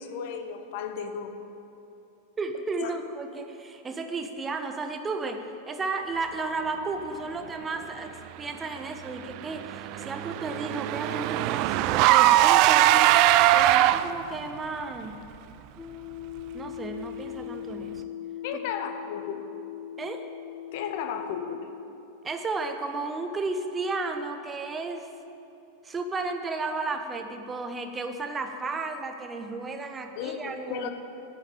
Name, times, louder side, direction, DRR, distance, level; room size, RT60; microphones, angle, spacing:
voice 1, 0.0-1.3 2.8-3.0 18.4-19.5 20.7-21.7 30.1-30.9, left 7 dB, 50° left, 7 dB, 0.9 m, -34 dB
voice 2, 2.4-13.1 13.5-15.2 16.5-18.1 20.0-20.2 22.2-25.1 25.8-30.9, right 3 dB, 15° right, 6 dB, 1.0 m, -33 dB
Car / Engine, 9.3-14.3, right 14 dB, 45° right, 0.4 m, -21 dB
sound 1, 15.8-21.8, left 11 dB, 15° left, 1.1 m, -40 dB
10.0 x 7.7 x 9.1 m, 2.8 s
figure-of-eight pair, 90°, 0 cm